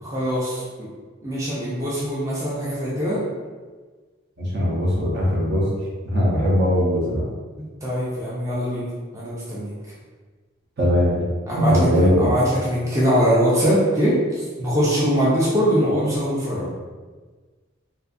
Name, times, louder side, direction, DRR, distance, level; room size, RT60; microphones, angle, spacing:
voice 1, 0.0-0.9 1.2-3.2 7.6-8.9 9.1-9.7 11.5-16.7, equal, 15° right, -8 dB, 0.4 m, -22 dB
voice 2, 4.4-5.7 6.1-7.3 10.8-11.3 11.5-12.3, equal, 55° right, -4 dB, 0.6 m, -20 dB
2.6 x 2.4 x 2.4 m, 1.4 s
head